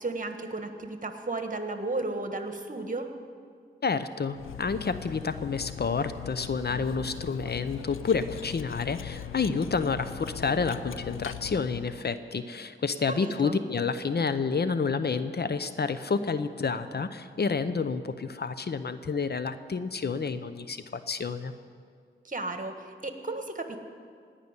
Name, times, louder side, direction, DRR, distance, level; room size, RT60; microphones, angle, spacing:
voice 1, 0.0-3.1 13.2-13.6 22.2-23.8, right 2 dB, 40° right, 6 dB, 1.5 m, -34 dB
voice 2, 3.8-21.5, left 5 dB, 50° left, 12 dB, 0.7 m, -29 dB
Cutlery silverware, 4.3-12.1, left 11 dB, 85° left, 0.4 m, -40 dB
17.5 x 5.9 x 9.7 m, 2.1 s
cardioid pair, 45°, 21 cm